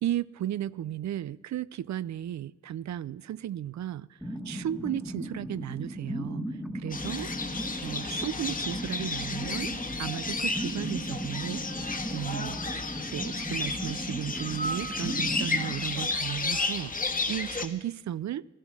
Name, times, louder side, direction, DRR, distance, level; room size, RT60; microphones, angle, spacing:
voice 1, 0.0-7.3 7.8-9.7 10.0-18.5, right 11 dB, 70° right, 19 dB, 0.4 m, -35 dB
sound 1, 4.2-16.9, equal, 5° right, 1.4 m, -37 dB
sound 2, 6.9-17.7, left 3 dB, 30° left, 1.3 m, -32 dB
15.5 x 12.5 x 6.0 m, 1.2 s
cardioid pair, 90°, 30 cm